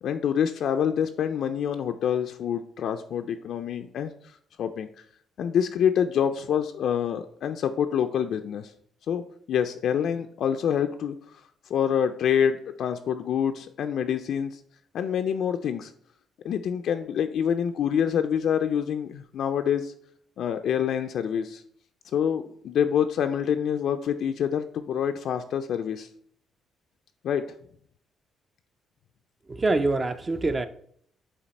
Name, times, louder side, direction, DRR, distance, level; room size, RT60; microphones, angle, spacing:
voice 1, 0.0-4.9 5.4-8.7 9.1-9.2 9.5-11.4 11.7-14.6 14.9-15.9 16.4-19.9 20.4-21.6 22.1-26.1 27.2-27.4, left 8 dB, 60° left, 7 dB, 0.3 m, -26 dB
voice 2, 29.5-30.7, right 2 dB, 25° right, 11 dB, 0.3 m, -25 dB
8.3 x 2.8 x 4.1 m, 0.62 s
cardioid pair, 140°, 0 cm